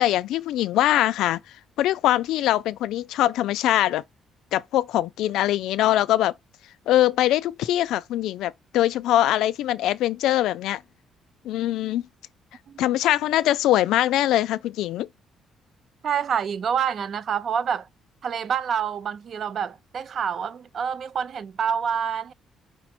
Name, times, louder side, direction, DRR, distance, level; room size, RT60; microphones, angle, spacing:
voice 1, 0.0-1.4 1.8-4.0 4.5-6.3 6.9-10.8 11.4-12.0 12.8-15.1, left 13 dB, 85° left, 0.3 m, -22 dB
voice 2, 16.0-17.9 18.2-22.3, right 7 dB, 40° right, 0.4 m, -27 dB
5.1 x 2.1 x 4.3 m
cardioid pair, 160°, 0 cm